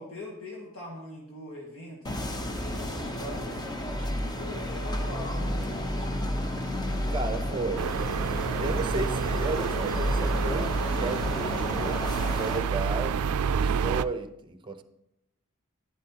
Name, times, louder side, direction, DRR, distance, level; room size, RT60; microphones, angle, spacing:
voice 1, 0.0-5.6, left 1 dB, 65° left, 1.8 m, -42 dB
sound 1, 2.0-12.6, equal, 20° left, 0.8 m, -31 dB
voice 2, 7.1-7.9 8.6-13.2 13.5-14.8, right 3 dB, 25° right, 0.7 m, -34 dB
sound 2, 7.8-14.0, right 7 dB, 85° right, 0.3 m, -29 dB
11.5 x 10.5 x 2.9 m
head